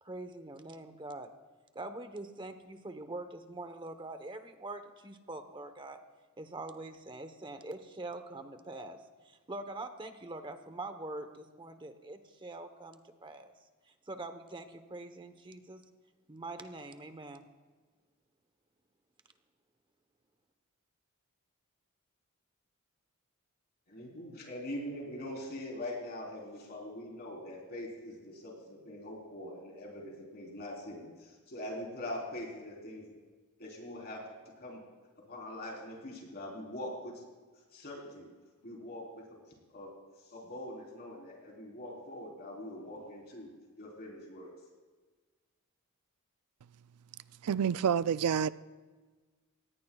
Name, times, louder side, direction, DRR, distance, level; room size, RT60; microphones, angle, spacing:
voice 1, 0.0-1.3 1.7-6.0 6.4-9.0 9.2-13.5 14.1-15.8 16.3-17.5, right 2 dB, 20° right, 1.0 m, -44 dB
voice 2, 23.9-33.1 33.6-34.2 34.6-34.8 35.3-37.2 37.7-38.3 38.6-39.2 39.7-39.9 40.2-43.5 43.8-44.5, left 1 dB, 45° left, 4.0 m, -43 dB
voice 3, 47.4-48.5, right 7 dB, 85° right, 0.4 m, -28 dB
24.5 x 19.0 x 2.4 m
head